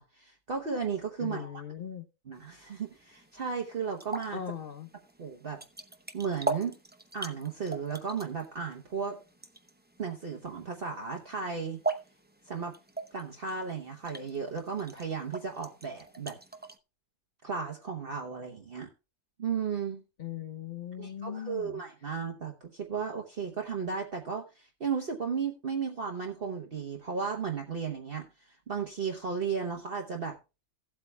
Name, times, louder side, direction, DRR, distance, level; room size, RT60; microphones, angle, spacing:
voice 1, 0.0-1.6 2.3-4.4 5.2-5.6 6.1-6.8 7.1-9.2 10.0-11.8 12.5-12.7 13.1-16.4 17.4-18.9 19.4-20.0 21.0-28.3 28.7-30.4, right 6 dB, 45° right, 1.2 m, -34 dB
voice 2, 1.2-2.0 4.3-4.9 20.2-21.8, left 9 dB, 45° left, 1.0 m, -39 dB
sound 1, 2.3-16.8, right 3 dB, 10° right, 0.5 m, -41 dB
16.5 x 8.1 x 2.2 m
omnidirectional pair, 1.5 m